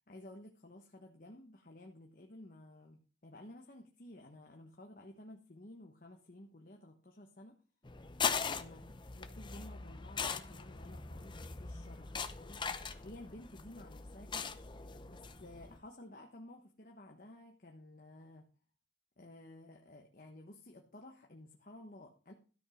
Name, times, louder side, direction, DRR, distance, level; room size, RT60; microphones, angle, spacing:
voice 1, 0.1-7.6 8.5-14.5 15.1-18.4 19.2-22.3, left 1 dB, 45° left, 2 dB, 1.2 m, -54 dB
sound 1, 7.8-15.8, left 5 dB, 25° left, 0.7 m, -40 dB
13.0 x 5.4 x 6.4 m, 0.36 s
head